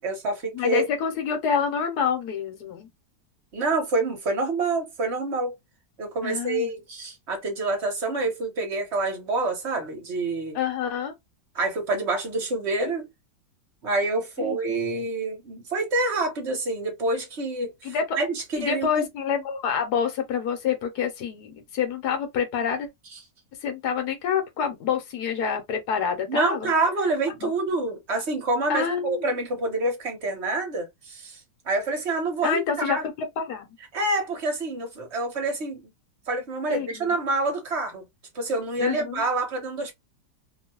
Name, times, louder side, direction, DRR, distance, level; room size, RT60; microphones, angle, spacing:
voice 1, 0.0-0.9 3.5-5.5 6.0-10.6 11.5-13.1 13.8-19.0 26.3-31.4 31.6-33.0 33.9-35.9 36.3-38.1 38.3-39.9, right 2 dB, 45° right, 1.1 m, -27 dB
voice 2, 0.5-2.9 6.2-6.7 10.5-11.1 14.4-14.6 17.8-18.2 18.6-22.9 23.6-26.7 27.4-27.5 28.7-29.2 32.4-33.8 36.7-37.1 38.8-39.2, left 7 dB, 70° left, 1.3 m, -27 dB
3.0 x 2.2 x 2.8 m
omnidirectional pair, 1.9 m